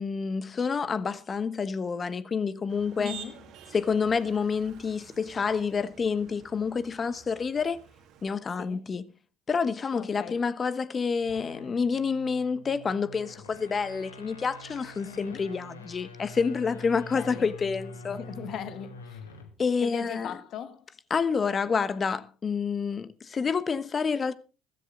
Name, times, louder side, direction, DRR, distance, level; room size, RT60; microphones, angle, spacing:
voice 1, 0.0-3.2 3.7-7.8 8.2-9.1 9.5-18.2 19.6-20.4 21.1-24.4, left 5 dB, 35° left, 1.1 m, -28 dB
Motor vehicle (road), 2.7-8.3, right 8 dB, 60° right, 2.2 m, -49 dB
voice 2, 3.0-3.4 8.6-8.8 10.0-10.4 15.0-15.4 17.1-17.5 18.1-19.2 19.8-20.8, left 9 dB, 55° left, 1.5 m, -38 dB
sound 1, 11.1-19.6, left 2 dB, 90° left, 2.0 m, -46 dB
15.0 x 14.0 x 3.8 m
hypercardioid pair, 60°, 0 cm